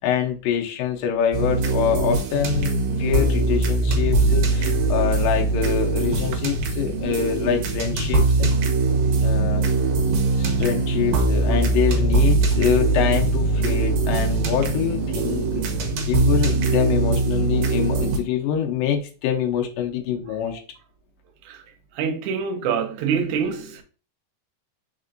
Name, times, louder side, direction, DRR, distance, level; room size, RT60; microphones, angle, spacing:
voice 1, 0.0-8.5 9.2-9.7 10.4-15.6 16.1-20.6, left 9 dB, 80° left, 2.4 m, -25 dB
sound 1, 1.3-18.2, right 3 dB, 70° right, 1.8 m, -21 dB
voice 2, 21.9-23.8, right 6 dB, 90° right, 1.6 m, -25 dB
4.5 x 4.4 x 2.5 m
omnidirectional pair, 3.9 m